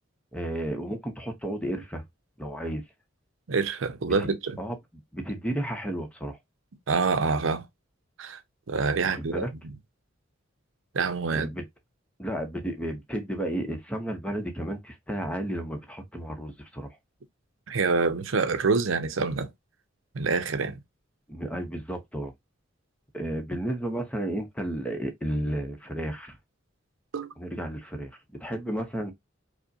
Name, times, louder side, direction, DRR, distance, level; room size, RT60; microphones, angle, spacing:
voice 1, 0.3-2.0 2.4-2.8 4.6-4.8 5.1-6.4 9.0-9.5 11.3-11.7 12.2-17.0 21.3-22.3 23.1-26.4 27.4-29.1, right 1 dB, 5° left, 0.7 m, -32 dB
voice 2, 3.5-4.6 6.9-7.7 8.2-8.4 8.7-9.5 10.9-11.5 17.7-19.5 20.1-20.8 27.1-27.3, right 4 dB, 80° right, 0.6 m, -26 dB
4.9 x 2.1 x 2.6 m
head